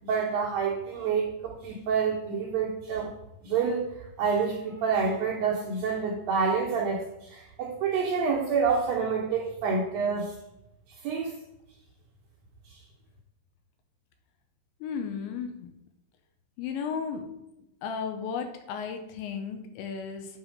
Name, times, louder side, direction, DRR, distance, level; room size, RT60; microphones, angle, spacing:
voice 1, 0.0-3.1 3.4-10.3 11.0-11.4, right 5 dB, 70° right, -4 dB, 2.2 m, -28 dB
voice 2, 14.8-15.7 16.6-17.3 17.8-20.3, left 6 dB, 80° left, 5 dB, 3.1 m, -34 dB
8.7 x 4.2 x 5.1 m, 0.89 s
omnidirectional pair, 5.3 m